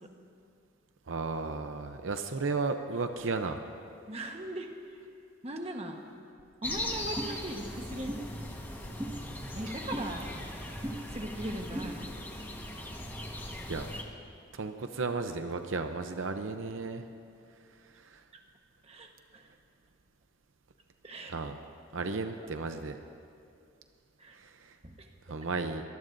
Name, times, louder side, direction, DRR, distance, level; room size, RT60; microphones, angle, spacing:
voice 1, 1.1-3.6 13.7-13.9 14.5-17.0 18.0-18.2 21.3-21.6 21.9-23.0 24.3-24.7 25.3-25.8, right 4 dB, 80° right, 7 dB, 0.7 m, -34 dB
voice 2, 4.1-4.7 5.4-6.0 6.6-8.2 9.5-10.2 11.1-12.1 18.3-18.4 18.8-19.5 21.0-21.4 24.2-24.4 24.8-25.1, right 1 dB, 30° right, 3 dB, 1.3 m, -39 dB
sound 1, 6.6-14.0, left 1 dB, 10° left, 1.4 m, -39 dB
sound 2, 7.2-7.3 8.1-8.2 9.0-9.1 9.9-10.1 10.8-11.0 11.7-11.9, equal, 15° right, 1.6 m, -36 dB
24.5 x 18.5 x 2.7 m, 2.4 s
head